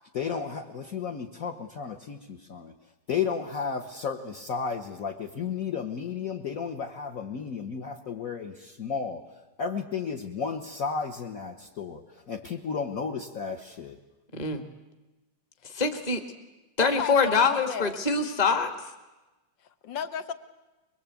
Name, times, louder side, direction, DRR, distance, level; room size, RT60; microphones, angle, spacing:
voice 1, 0.1-2.7 3.1-9.2 9.6-12.0 12.3-14.0, left 6 dB, 45° left, 2 dB, 1.6 m, -33 dB
voice 2, 15.6-16.2 16.8-18.7, left 4 dB, 20° left, 7 dB, 1.6 m, -24 dB
voice 3, 16.8-18.0 19.8-20.3, left 8 dB, 65° left, 10 dB, 1.9 m, -34 dB
23.0 x 23.0 x 8.5 m, 1.1 s
omnidirectional pair, 2.3 m